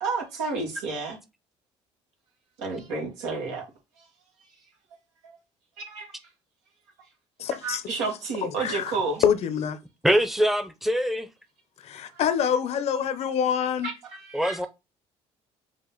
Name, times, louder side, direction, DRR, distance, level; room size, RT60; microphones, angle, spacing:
voice 1, 0.0-1.2 2.6-3.6 4.0-4.1 5.2-5.3 5.8-6.1 7.6-9.2 13.8-14.6, right 4 dB, 90° right, 1.7 m, -31 dB
voice 2, 7.4-7.8 8.4-9.0 9.2-9.8 11.8-13.9, left 8 dB, 60° left, 0.7 m, -26 dB
voice 3, 10.0-11.3 14.3-14.7, equal, ahead, 0.7 m, -23 dB
5.0 x 2.4 x 3.9 m
supercardioid pair, 80°, 13 cm